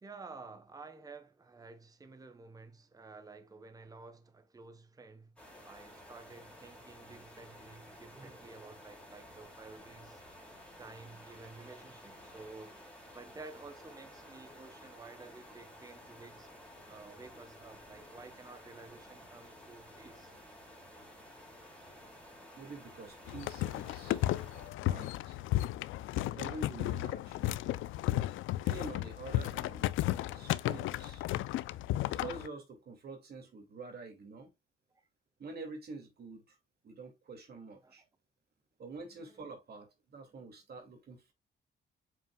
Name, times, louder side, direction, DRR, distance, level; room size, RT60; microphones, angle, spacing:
voice 1, 0.0-5.3 5.6-10.2 10.8-16.6 16.9-20.3 30.3-30.6 37.8-38.0 39.1-39.4, right 3 dB, 20° right, 1.0 m, -52 dB
sound 1, 5.4-24.7, left 1 dB, 5° left, 3.3 m, -53 dB
voice 2, 22.6-24.2 24.9-25.4 26.3-27.5 28.6-29.9 30.3-31.2 32.1-34.5 35.4-36.6 36.8-38.0 38.8-41.3, right 3 dB, 55° right, 2.3 m, -47 dB
sound 2, 23.3-32.5, left 15 dB, 85° left, 0.5 m, -34 dB
7.2 x 5.6 x 2.3 m
cardioid pair, 90°, 20 cm